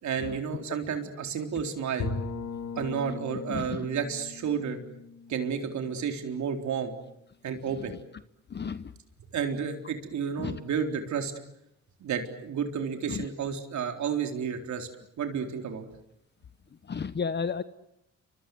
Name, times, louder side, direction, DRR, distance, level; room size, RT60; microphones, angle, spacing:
voice 1, 0.0-2.1 2.8-4.8 5.3-6.9 7.4-8.0 9.3-11.3 12.0-14.9 15.2-15.9, right 7 dB, 70° right, 4 dB, 4.0 m, -31 dB
Bowed string instrument, 2.0-6.8, left 4 dB, 60° left, 3.0 m, -39 dB
voice 2, 3.5-3.8 8.5-8.9 10.4-10.6 13.1-13.3 16.9-17.6, left 6 dB, 35° left, 13 dB, 1.0 m, -32 dB
29.5 x 24.5 x 7.9 m, 0.79 s
cardioid pair, 90°, 30 cm